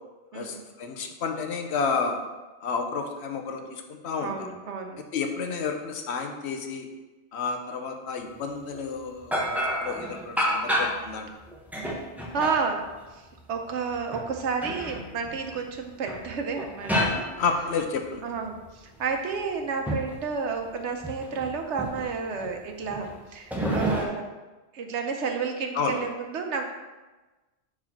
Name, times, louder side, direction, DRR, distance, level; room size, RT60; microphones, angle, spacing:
voice 1, 0.3-2.2 2.6-4.5 5.1-6.9 7.3-11.3 17.4-18.2 25.7-26.0, left 5 dB, 75° left, 5 dB, 1.0 m, -31 dB
voice 2, 4.2-5.0 12.3-12.9 13.1-13.2 13.5-17.3 18.2-24.2 24.7-26.7, right 5 dB, 90° right, 4 dB, 1.1 m, -31 dB
sound 1, 8.7-8.8 9.3-11.1 11.5-13.1 13.8-15.8 16.1-18.2 18.5-20.2 20.5-20.7 21.0-21.5 21.8-22.5 22.8-23.1 23.5-24.0, equal, ahead, 0.8 m, -30 dB
4.6 x 4.3 x 5.8 m, 1.2 s
omnidirectional pair, 1.1 m